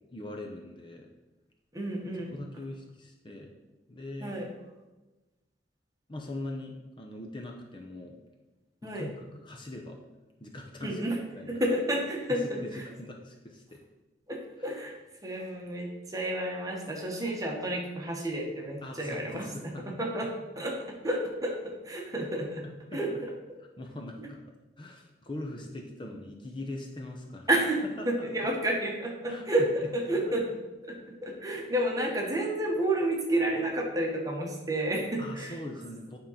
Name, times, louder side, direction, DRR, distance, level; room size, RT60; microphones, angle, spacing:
voice 1, 0.1-1.1 2.3-3.5 3.9-4.4 6.1-8.2 8.8-10.0 10.4-11.0 11.3-11.6 12.3-13.8 14.6-14.7 18.8-20.0 20.6-20.7 22.6-23.0 23.8-24.4 24.8-27.5 28.0-28.5 29.3-29.4 30.2-30.3 35.2-36.2, left 1 dB, 30° left, 2 dB, 0.7 m, -41 dB
voice 2, 1.7-2.3 4.2-4.5 8.8-9.1 10.8-11.2 11.5-12.8 14.3-14.9 15.2-19.5 20.0-20.7 21.0-22.6 22.9-23.3 24.2-24.3 27.5-30.5 30.8-35.6, right 1 dB, 20° right, -1 dB, 1.3 m, -30 dB
9.2 x 3.8 x 5.6 m, 1.1 s
head